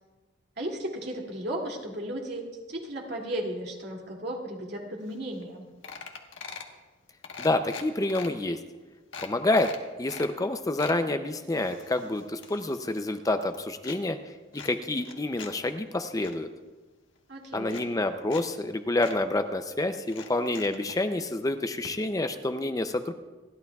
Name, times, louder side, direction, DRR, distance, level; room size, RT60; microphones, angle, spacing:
voice 1, 0.6-5.7 17.3-17.8, right 1 dB, 60° right, -1 dB, 2.4 m, -35 dB
sound 1, 5.1-5.2 5.4-5.6 5.8-6.8 7.2-8.3 8.7-8.8 9.1-10.3 10.6-11.0 11.5-13.0 13.3-14.0 14.5-15.5 15.9-16.4 17.2-17.3 17.6-18.4 18.7-18.8 19.0-19.2 20.0-21.0 21.8-21.9 22.2-22.3, left 5 dB, 80° left, 1.3 m, -42 dB
voice 2, 7.4-8.6 9.2-9.7 10.0-14.2 14.5-16.5 17.5-23.1, left 2 dB, 20° left, 8 dB, 0.5 m, -28 dB
29.0 x 11.5 x 2.4 m, 1.2 s
head